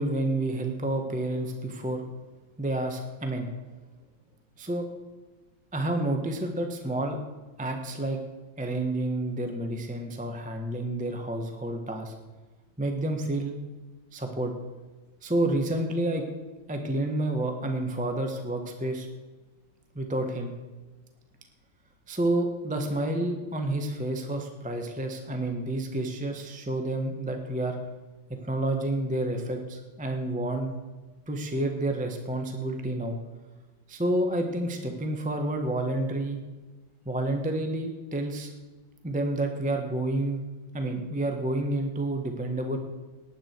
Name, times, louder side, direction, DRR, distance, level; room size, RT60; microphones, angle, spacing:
voice 1, 0.0-2.0 2.6-3.5 4.6-4.9 5.7-7.2 7.6-8.2 8.6-12.1 12.8-13.6 14.1-14.5 15.2-16.2 16.7-19.1 19.9-20.6 22.1-27.7 28.3-30.7 31.3-33.2 33.9-36.4 37.0-38.5 39.0-40.4 40.7-42.8, right 1 dB, 5° right, 4 dB, 1.0 m, -29 dB
19.0 x 10.5 x 4.6 m, 1.2 s
omnidirectional pair, 2.2 m